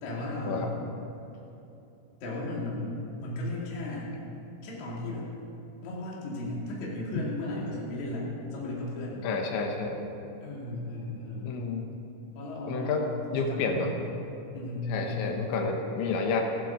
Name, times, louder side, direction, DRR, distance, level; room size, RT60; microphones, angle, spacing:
voice 1, 0.0-0.8 2.2-2.9 3.2-4.1 4.6-5.3 5.8-9.3 10.4-11.5 12.4-14.1 14.5-15.7, left 2 dB, 45° left, -5 dB, 3.4 m, -35 dB
voice 2, 9.2-10.0 11.4-11.8 12.7-13.9 14.9-16.4, left 4 dB, 75° left, 2 dB, 3.3 m, -30 dB
15.0 x 12.0 x 6.5 m, 2.8 s
omnidirectional pair, 5.8 m